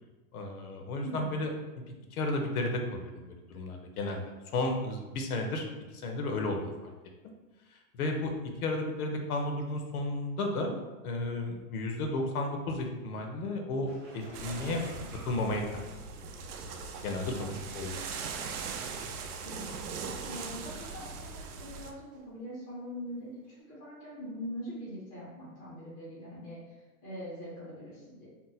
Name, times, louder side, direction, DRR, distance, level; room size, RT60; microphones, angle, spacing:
voice 1, 0.3-1.5 1.8-1.9 2.1-5.6 6.0-6.9 7.9-8.3 8.6-10.8 11.0-14.8 15.3-15.9 17.0-18.1, left 2 dB, 75° left, 3 dB, 0.7 m, -33 dB
voice 2, 1.0-1.3 17.3-17.7 19.4-19.7 20.3-23.4 23.7-26.6 27.0-28.3, equal, 10° left, -9 dB, 0.4 m, -42 dB
sound 1, 13.9-16.4 17.3-17.4 18.3-18.4 18.6-18.9 19.5-20.9 21.3-21.9 22.1-22.2 23.4-23.5, right 1 dB, 30° right, 0.7 m, -49 dB
sound 2, 14.3-21.9, right 5 dB, 85° right, 0.6 m, -40 dB
2.8 x 2.0 x 3.9 m, 1.2 s
supercardioid pair, 165°, 44 cm